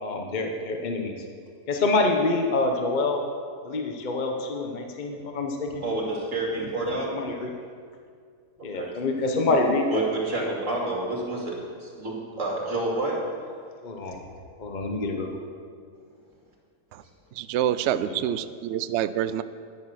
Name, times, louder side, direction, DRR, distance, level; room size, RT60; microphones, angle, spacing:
voice 1, 0.0-1.2 1.7-3.2 3.6-5.8 7.1-7.5 8.6-10.0 13.8-14.2 14.6-15.5 18.0-18.2, left 3 dB, 30° left, 2 dB, 1.1 m, -26 dB
voice 2, 5.8-7.1 8.7-8.9 9.9-13.2, right 2 dB, 50° right, -2 dB, 2.8 m, -29 dB
voice 3, 17.3-19.4, right 11 dB, 85° right, 13 dB, 0.6 m, -27 dB
11.0 x 10.5 x 6.4 m, 2.1 s
omnidirectional pair, 1.8 m